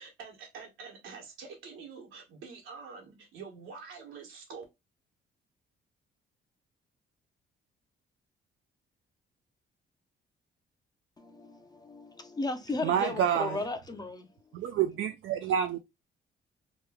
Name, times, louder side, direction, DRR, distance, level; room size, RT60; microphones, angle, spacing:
voice 1, 0.0-4.6, right 5 dB, 90° right, 1.2 m, -46 dB
voice 2, 11.2-14.3, left 2 dB, 20° left, 0.6 m, -35 dB
voice 3, 12.8-13.6 14.5-15.8, right 9 dB, 75° right, 0.4 m, -28 dB
3.1 x 2.2 x 3.4 m
cardioid pair, 90°, 20 cm